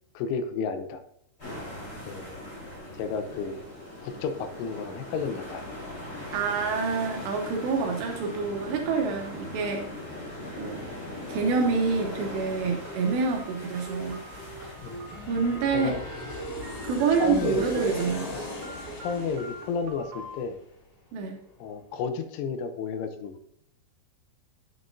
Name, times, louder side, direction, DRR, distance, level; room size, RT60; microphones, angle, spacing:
voice 1, 0.2-1.0 2.0-2.4 3.0-3.6 4.0-5.6 9.6-9.8 14.8-15.0 15.7-16.0 17.2-17.9 18.3-18.5 19.0-20.6 21.6-23.5, left 5 dB, 80° left, 9 dB, 3.1 m, -32 dB
sound 1, 1.4-16.9, left 1 dB, 15° left, 3.7 m, -40 dB
voice 2, 6.3-9.9 10.6-10.8 11.3-14.3 15.3-16.0 16.8-18.4 21.1-21.4, right 5 dB, 75° right, 2 dB, 2.7 m, -27 dB
Aircraft, 10.3-21.2 21.5-21.6, left 2 dB, 65° left, 5.3 m, -41 dB
sound 2, 12.4-20.4, right 3 dB, 60° right, 2.1 m, -43 dB
9.4 x 8.7 x 2.6 m, 0.71 s
omnidirectional pair, 5.6 m